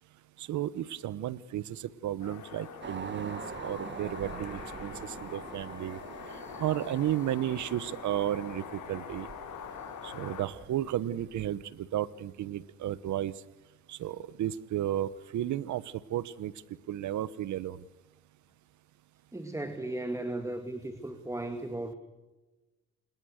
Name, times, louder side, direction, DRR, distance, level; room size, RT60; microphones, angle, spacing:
voice 1, 0.4-6.0 6.6-9.3 10.0-13.3 13.9-16.5 16.9-17.8, right 12 dB, 75° right, 19 dB, 1.1 m, -33 dB
sound 1, 2.2-10.4, left 7 dB, 75° left, 4.4 m, -44 dB
sound 2, 2.8-11.5, right 5 dB, 40° right, 1.9 m, -45 dB
voice 2, 19.3-21.9, right 2 dB, 10° right, 8 dB, 2.1 m, -36 dB
28.0 x 20.5 x 6.5 m, 1.1 s
cardioid pair, 90°, 30 cm